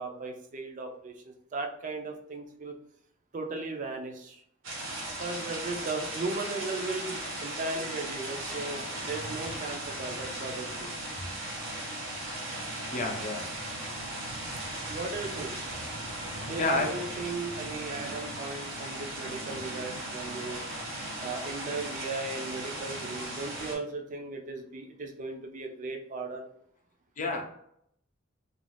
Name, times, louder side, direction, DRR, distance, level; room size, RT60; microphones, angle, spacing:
voice 1, 0.0-2.8 3.3-4.4 5.2-10.9 14.9-15.6 16.4-20.6 21.2-26.5, right 3 dB, 40° right, 4 dB, 0.4 m, -36 dB
sound 1, 4.6-23.8, right 1 dB, 85° right, 1.0 m, -37 dB
voice 2, 12.9-13.6 16.2-17.0 27.2-27.4, left 3 dB, 40° left, 2 dB, 0.5 m, -31 dB
2.4 x 2.3 x 3.3 m, 0.71 s
head